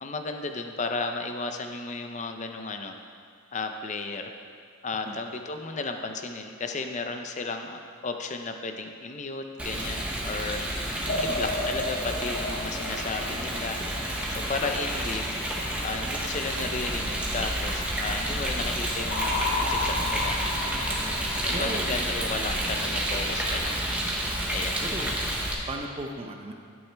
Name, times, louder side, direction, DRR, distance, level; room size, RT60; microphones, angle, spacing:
voice 1, 0.0-3.0 3.5-4.3 4.8-10.6 11.2-13.8 14.3-15.4 15.8-20.9 21.4-23.8 24.5-24.8, left 3 dB, 35° left, 5 dB, 0.6 m, -34 dB
Rain, 9.6-25.5, right 1 dB, 5° right, 1.0 m, -30 dB
voice 2, 11.0-11.4 18.5-18.7 21.5-21.9 24.8-25.3 25.7-26.5, right 1 dB, 25° right, 3 dB, 0.7 m, -36 dB
sound 1, 11.1-14.3 19.1-21.9, left 2 dB, 55° left, 1.1 m, -33 dB
11.0 x 8.9 x 3.4 m, 2.2 s
head